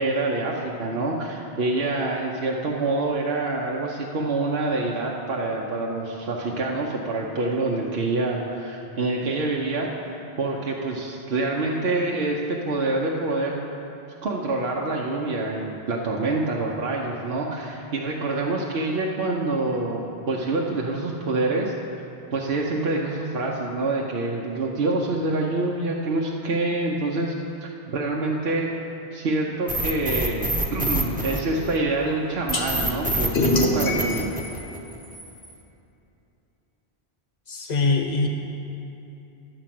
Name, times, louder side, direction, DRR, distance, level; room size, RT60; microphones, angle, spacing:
voice 1, 0.0-9.9 10.4-13.6 14.2-21.7 22.3-27.3 27.6-28.7 29.1-34.3, right 2 dB, 70° right, -2 dB, 1.0 m, -26 dB
sound 1, 29.7-32.0 32.5-34.9, right 1 dB, 10° right, 0.7 m, -26 dB
sound 2, 32.5-32.6 33.3-35.5, left 2 dB, 70° left, 1.4 m, -26 dB
voice 2, 37.5-38.3, left 3 dB, 45° left, 2 dB, 1.0 m, -23 dB
11.5 x 5.0 x 7.5 m, 2.8 s
omnidirectional pair, 1.1 m